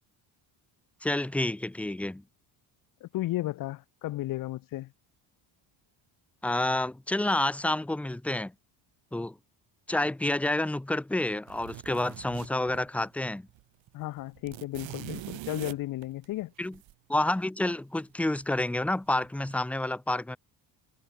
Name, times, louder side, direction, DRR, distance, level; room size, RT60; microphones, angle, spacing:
voice 1, 1.0-2.2 6.4-8.5 9.1-9.3 9.9-13.5 16.6-16.7 17.1-20.4, left 1 dB, 5° left, 0.8 m, -29 dB
voice 2, 3.0-4.9 13.9-16.5, left 16 dB, 45° left, 0.6 m, -34 dB
sound 1, 11.5-13.2 13.5-13.6 13.9-16.9 18.4-18.9 19.2-19.5, right 16 dB, 80° right, 4.4 m, -43 dB
cardioid pair, 165°, 46 cm